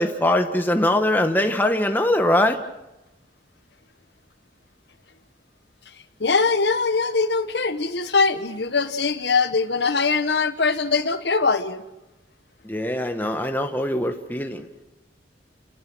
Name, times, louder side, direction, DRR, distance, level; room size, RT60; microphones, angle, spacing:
voice 1, 0.0-2.6 12.6-14.7, left 1 dB, 10° left, 6 dB, 1.5 m, -22 dB
voice 2, 6.2-11.8, left 4 dB, 70° left, 10 dB, 1.4 m, -22 dB
29.5 x 18.5 x 6.3 m, 0.97 s
head